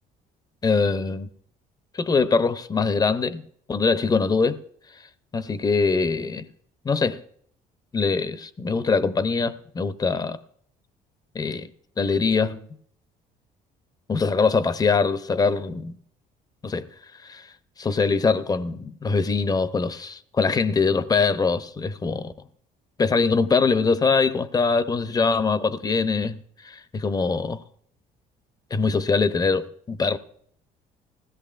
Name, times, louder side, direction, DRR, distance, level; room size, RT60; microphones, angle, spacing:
voice 1, 0.6-1.3 1.9-3.4 3.7-4.6 5.3-6.5 6.8-7.2 7.9-10.4 11.3-11.7 12.0-12.6 14.1-16.0 16.6-16.9 17.2-17.5 17.8-22.3 23.0-27.6 28.7-30.2, left 4 dB, 20° left, 0.6 m, -23 dB
19.5 x 16.0 x 2.5 m
cardioid pair, 110°, 17 cm